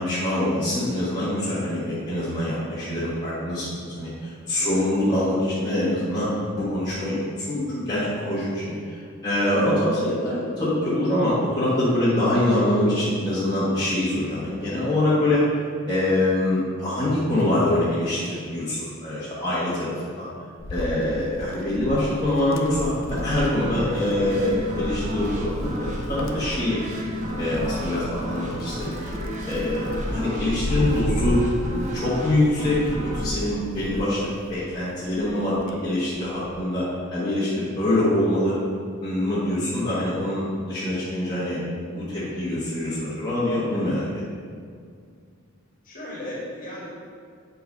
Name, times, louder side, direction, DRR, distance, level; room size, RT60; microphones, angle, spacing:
voice 1, 0.0-15.4 15.9-20.3 20.7-25.8 26.1-26.8 27.4-28.9 29.5-31.4 31.8-32.8 33.0-36.8 37.1-38.5 39.0-44.1, left 1 dB, 20° left, -11 dB, 1.4 m, -24 dB
voice 2, 4.5-4.9 14.7-15.0 30.0-30.2 39.7-40.1 45.8-46.9, left 1 dB, 35° left, -5 dB, 1.8 m, -38 dB
Wind, 20.6-34.7 35.1-36.6, left 1 dB, 60° left, 0.6 m, -33 dB
sound 1, 23.1-34.6, equal, 35° right, 0.9 m, -32 dB
7.8 x 4.0 x 5.3 m, 2.1 s
head